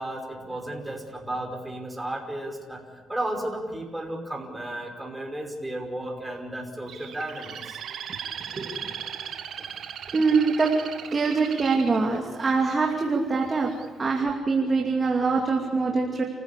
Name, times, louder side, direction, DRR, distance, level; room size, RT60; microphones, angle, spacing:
voice 1, 0.0-8.0 9.6-9.7 14.5-14.6, right 1 dB, 10° right, 1 dB, 5.3 m, -34 dB
Bird, 6.9-12.9 13.5-13.9, right 9 dB, 70° right, 1.7 m, -38 dB
voice 2, 8.5-9.1 10.1-10.7 11.1-13.7 14.0-16.2, right 4 dB, 35° right, 0 dB, 2.8 m, -24 dB
30.0 x 15.5 x 8.5 m, 1.5 s
cardioid pair, 90°, 0 cm